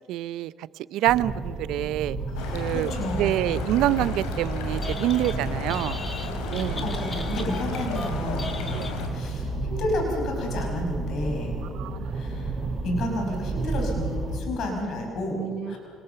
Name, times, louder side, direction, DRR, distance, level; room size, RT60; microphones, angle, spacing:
voice 1, 0.1-0.5 0.9-2.2 2.5-2.9 3.2-6.0 6.5-6.9 8.7-8.9 11.7-12.1 15.4-15.8, right 14 dB, 75° right, 18 dB, 0.5 m, -26 dB
sound 1, 1.1-14.4, right 3 dB, 35° right, 4.7 m, -32 dB
voice 2, 2.3-3.6 6.4-8.6 9.1-11.6 12.1-12.6 12.8-15.8, left 1 dB, 65° left, 2 dB, 5.5 m, -31 dB
sound 2, 2.4-9.1, left 4 dB, 90° left, 2.8 m, -34 dB
Telephone, 4.6-5.4 5.7-9.4, left 2 dB, 30° left, 2.5 m, -39 dB
26.0 x 19.5 x 7.0 m, 2.2 s
supercardioid pair, 70°, 0 cm